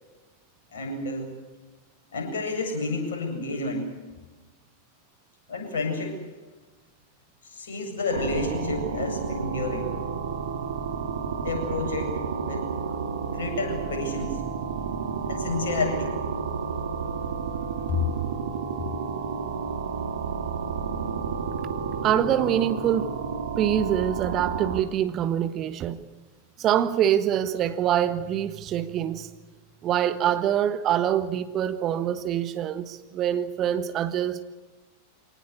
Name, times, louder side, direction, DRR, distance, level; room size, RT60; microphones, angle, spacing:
voice 1, 0.7-1.4 2.1-3.9 5.5-6.2 7.4-9.9 11.4-12.7 13.3-14.4 15.2-16.2 17.9-18.0, left 3 dB, 60° left, 7.9 m, -30 dB
sound 1, 8.1-24.8, right 6 dB, 70° right, 2.3 m, -31 dB
voice 2, 22.0-23.1 23.6-26.0 26.6-29.3 29.8-34.4, right 10 dB, 35° right, 1.4 m, -25 dB
25.0 x 19.0 x 8.3 m
figure-of-eight pair, 90°, 0 cm